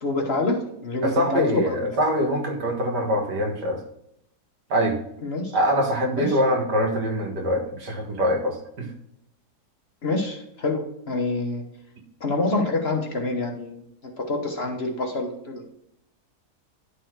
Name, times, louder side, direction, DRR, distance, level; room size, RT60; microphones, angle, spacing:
voice 1, 0.0-1.7 5.2-5.6 6.2-6.4 10.0-11.6 12.2-13.8 14.2-15.7, left 2 dB, 40° left, 2 dB, 1.3 m, -26 dB
voice 2, 1.0-3.8 4.7-5.0 5.5-8.9, equal, 85° right, 1 dB, 2.2 m, -24 dB
11.0 x 3.9 x 4.6 m, 0.77 s
omnidirectional pair, 1.7 m